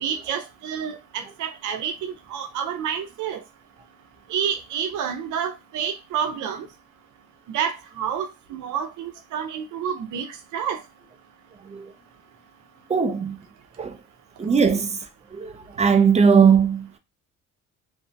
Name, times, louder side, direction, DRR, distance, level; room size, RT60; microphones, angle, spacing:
voice 1, 0.0-3.4 4.3-6.7 7.5-10.3 10.5-10.8, right 8 dB, 75° right, 0.6 m, -29 dB
voice 2, 12.9-13.4 13.8-14.0 14.4-15.0 15.4-15.5 15.8-17.0, right 6 dB, 25° right, 0.4 m, -18 dB
2.6 x 2.1 x 2.6 m
cardioid pair, 90°, 30 cm